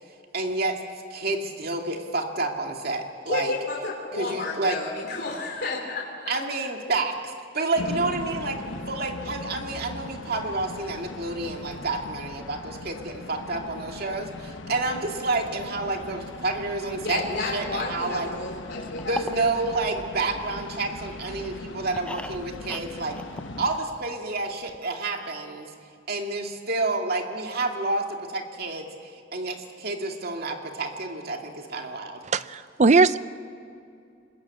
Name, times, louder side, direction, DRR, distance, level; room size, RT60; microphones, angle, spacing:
voice 1, 0.3-0.8 1.1-3.5 4.1-4.8 6.3-8.6 8.9-18.3 19.1-23.2 23.6-25.7 26.1-32.2, right 3 dB, 55° right, 3 dB, 2.3 m, -29 dB
voice 2, 3.3-6.3 17.0-19.6, left 3 dB, 60° left, -1 dB, 2.9 m, -32 dB
sound 1, 7.8-23.8, left 2 dB, 90° left, 1.1 m, -39 dB
sound 2, 19.0-21.0 21.4-24.1 24.4-24.5 24.7-24.8, left 1 dB, 5° left, 0.5 m, -39 dB
voice 3, 32.3-33.2, right 3 dB, 40° right, 15 dB, 0.6 m, -19 dB
25.0 x 21.0 x 8.4 m, 2.5 s
head